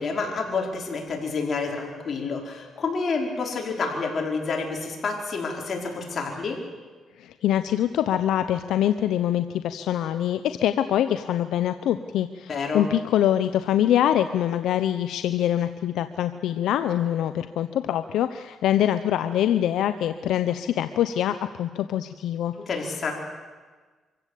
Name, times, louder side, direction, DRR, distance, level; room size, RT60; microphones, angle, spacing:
voice 1, 0.0-6.6 12.5-12.9 22.5-23.1, left 4 dB, 45° left, 1 dB, 5.1 m, -29 dB
voice 2, 7.2-22.5, left 11 dB, 80° left, 11 dB, 0.7 m, -24 dB
25.0 x 16.0 x 8.4 m, 1.4 s
cardioid pair, 90°, 0 cm